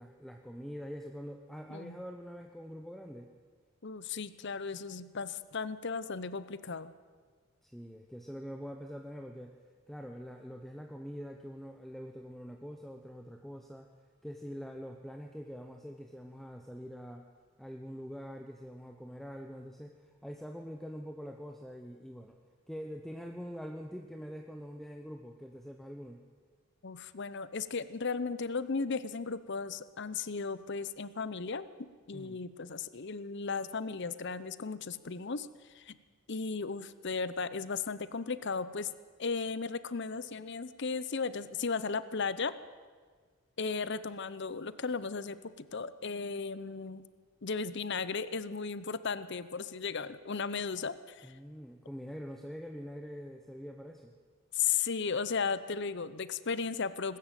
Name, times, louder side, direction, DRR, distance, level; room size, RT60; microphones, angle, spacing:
voice 1, 0.0-3.3 7.6-9.6 9.9-13.9 14.2-17.3 17.6-22.4 22.7-26.2 32.1-32.4 51.2-54.1, equal, ahead, 3 dB, 0.9 m, -44 dB
voice 2, 3.8-6.9 26.8-31.7 32.1-35.5 35.7-35.9 36.3-38.9 39.2-42.5 43.6-47.0 47.4-51.3 54.5-57.2, left 5 dB, 55° left, 15 dB, 0.8 m, -35 dB
21.0 x 13.5 x 9.1 m, 1.5 s
head